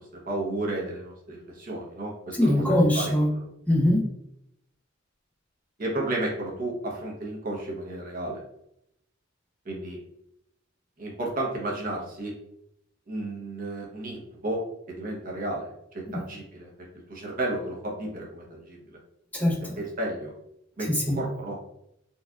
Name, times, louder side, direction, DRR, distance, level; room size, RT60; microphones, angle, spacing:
voice 1, 0.0-2.6 2.9-3.5 5.8-8.4 9.6-10.0 11.0-12.3 13.1-16.7 17.1-19.0 19.8-20.3 20.8-21.6, right 1 dB, 45° right, -2 dB, 0.9 m, -33 dB
voice 2, 2.4-3.3 3.7-4.0 16.1-16.2 19.3-19.8 20.9-21.2, left 1 dB, 5° left, -2 dB, 0.6 m, -22 dB
4.1 x 2.4 x 2.3 m, 0.79 s
head